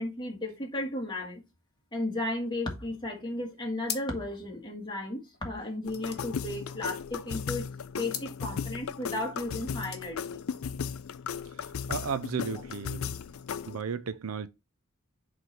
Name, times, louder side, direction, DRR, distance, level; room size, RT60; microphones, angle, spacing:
voice 1, 0.0-1.4 1.9-7.7 8.0-10.4, left 1 dB, 20° left, 1.8 m, -34 dB
sound 1, 3.8-4.4 4.7-4.8 5.0-7.2 8.0-8.4 9.5-10.1, left 9 dB, 50° left, 1.2 m, -41 dB
sound 2, 5.9-13.8, left 6 dB, 80° left, 0.4 m, -36 dB
voice 2, 11.9-13.1 13.7-14.5, right 6 dB, 85° right, 0.6 m, -34 dB
7.8 x 3.3 x 4.3 m
head